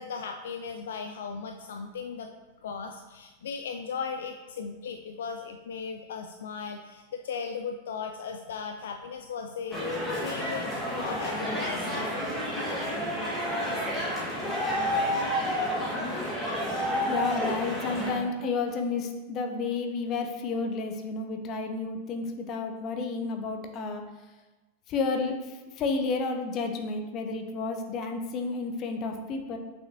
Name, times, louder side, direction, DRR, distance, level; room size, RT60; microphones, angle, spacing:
voice 1, 0.0-2.3 2.6-12.2, left 6 dB, 60° left, 5 dB, 0.4 m, -37 dB
sound 1, 9.7-18.1, equal, 10° left, 2.0 m, -30 dB
voice 2, 17.1-24.0 24.9-29.6, left 4 dB, 35° left, 5 dB, 0.7 m, -31 dB
6.4 x 5.7 x 2.9 m, 1.2 s
figure-of-eight pair, 90°, 0 cm